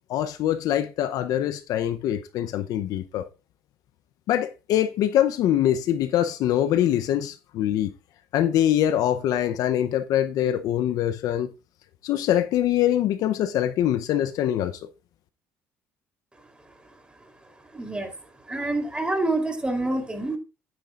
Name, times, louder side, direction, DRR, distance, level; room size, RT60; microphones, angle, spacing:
voice 1, 0.1-3.2 4.3-7.9 8.3-11.5 12.0-14.8, left 11 dB, 65° left, 0.8 m, -23 dB
voice 2, 17.7-18.1 18.4-20.4, right 2 dB, 15° right, 3.6 m, -27 dB
11.5 x 9.4 x 2.5 m
supercardioid pair, 75°, 7 cm